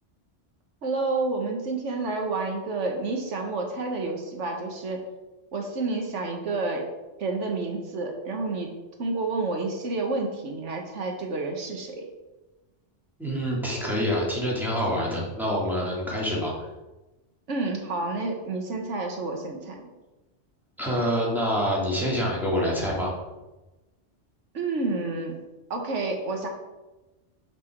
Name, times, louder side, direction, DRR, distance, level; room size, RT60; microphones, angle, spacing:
voice 1, 0.8-5.0 5.5-6.8 7.2-8.7 9.0-12.0 17.5-19.9 24.5-25.4 25.7-26.5, right 3 dB, 85° right, 2 dB, 1.5 m, -29 dB
voice 2, 13.2-16.5 20.8-23.1, equal, ahead, -5 dB, 2.3 m, -26 dB
5.8 x 5.7 x 6.0 m, 1.1 s
omnidirectional pair, 1.2 m